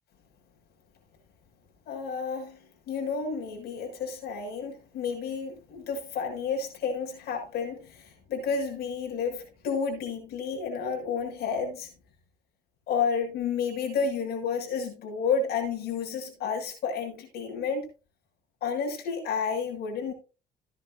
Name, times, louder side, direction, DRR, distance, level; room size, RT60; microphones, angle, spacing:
voice 1, 1.9-11.9 12.9-17.9 18.6-20.1, left 5 dB, 70° left, 6.8 m, -31 dB
16.0 x 10.5 x 2.7 m
cardioid pair, 110°, 17 cm